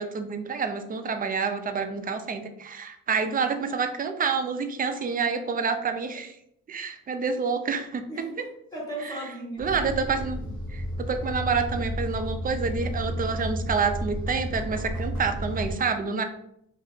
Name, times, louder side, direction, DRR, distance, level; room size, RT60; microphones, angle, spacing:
voice 1, 0.0-6.4 6.7-8.1 9.0-9.2 9.6-10.4 10.7-16.2, right 5 dB, 25° right, 7 dB, 0.3 m, -28 dB
voice 2, 8.1-9.6, right 1 dB, 10° left, -4 dB, 1.3 m, -36 dB
sound 1, 9.6-15.7, equal, 50° left, 0.9 m, -32 dB
2.7 x 2.0 x 2.6 m, 0.73 s
cardioid pair, 60°, 36 cm